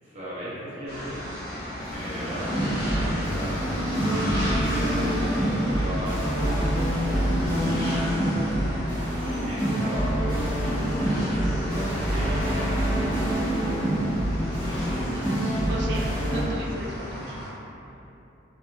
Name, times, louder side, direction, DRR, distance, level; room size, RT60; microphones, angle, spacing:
voice 1, 0.0-1.2 1.8-10.9 11.3-13.2, equal, 35° right, -10 dB, 0.7 m, -38 dB
sound 1, 0.9-17.5, equal, 50° left, 1.1 m, -33 dB
sound 2, 1.8-16.4, right 1 dB, 75° left, 1.2 m, -26 dB
voice 2, 15.1-17.4, right 1 dB, 60° right, -2 dB, 0.3 m, -36 dB
2.6 x 2.3 x 2.3 m, 2.9 s
head